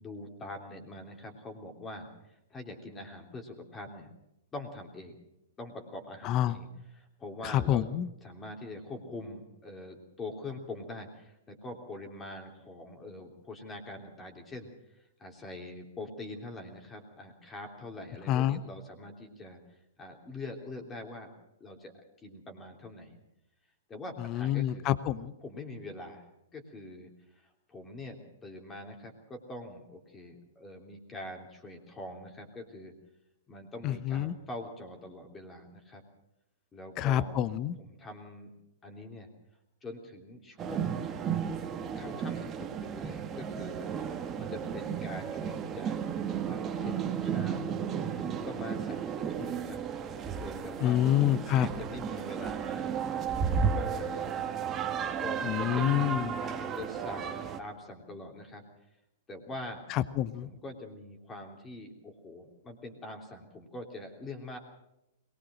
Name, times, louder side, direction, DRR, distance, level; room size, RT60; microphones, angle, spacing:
voice 1, 0.0-2.1 2.5-4.1 4.5-5.2 5.6-6.7 6.9-7.9 8.2-14.7 15.2-19.6 20.0-21.3 21.6-21.9 22.2-23.2 23.9-24.9 25.4-26.2 26.5-27.1 27.7-32.9 33.5-36.0 36.7-37.4 37.8-38.5 38.8-39.3 39.8-40.9 41.7-43.9 44.4-46.0 46.3-47.7 47.9-49.8 50.4-54.5 55.2-56.1 56.5-58.6 59.3-59.9 60.4-64.6, left 2 dB, 20° left, 3 dB, 3.3 m, -44 dB
voice 2, 6.2-6.6 7.4-8.1 18.3-18.6 24.2-25.3 33.8-34.3 37.0-37.7 50.8-51.7 55.4-56.3 59.9-60.5, left 12 dB, 35° left, 16 dB, 0.9 m, -27 dB
sound 1, 40.6-57.6, right 7 dB, 25° right, 1.7 m, -33 dB
22.5 x 19.5 x 6.3 m, 0.87 s
figure-of-eight pair, 105°, 0 cm